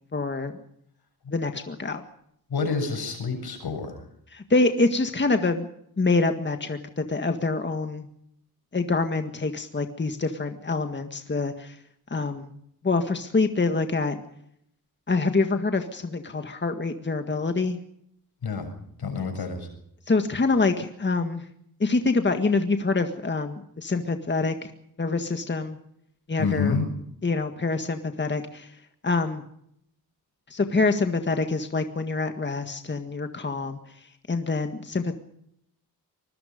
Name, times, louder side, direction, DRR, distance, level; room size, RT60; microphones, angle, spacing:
voice 1, 0.1-0.5 1.3-2.0 4.3-5.7 6.0-8.1 8.7-11.8 12.1-12.5 12.8-14.2 15.1-17.8 20.1-21.4 21.8-24.7 25.0-25.8 26.3-26.8 27.2-28.7 29.0-29.4 30.5-33.8 34.3-35.1, left 3 dB, 30° left, 6 dB, 1.8 m, -25 dB
voice 2, 2.5-4.0 18.4-18.7 19.0-19.7 26.4-26.9, left 4 dB, 80° left, 6 dB, 7.4 m, -28 dB
25.0 x 21.5 x 5.2 m, 0.73 s
wide cardioid pair, 120°, 38 cm